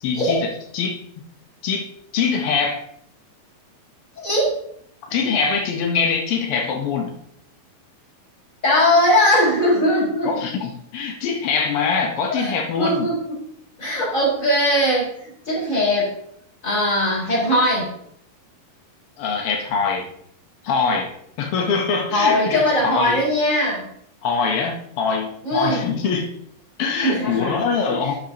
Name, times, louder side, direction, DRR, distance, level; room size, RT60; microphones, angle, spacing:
voice 1, 0.0-1.0 1.6-1.9 2.1-2.8 5.1-7.2 10.2-13.1 19.2-20.1 20.6-21.1 21.4-23.2 24.2-26.3 26.8-28.1, left 5 dB, 80° left, 2 dB, 1.2 m, -23 dB
voice 2, 4.2-4.6 8.6-10.3 12.3-12.5 12.8-13.4 13.8-16.1 16.6-17.9 22.1-23.9 25.4-25.8 27.0-27.6 27.9-28.2, left 1 dB, 20° left, -6 dB, 4.6 m, -20 dB
11.5 x 9.0 x 2.9 m, 0.69 s
omnidirectional pair, 4.1 m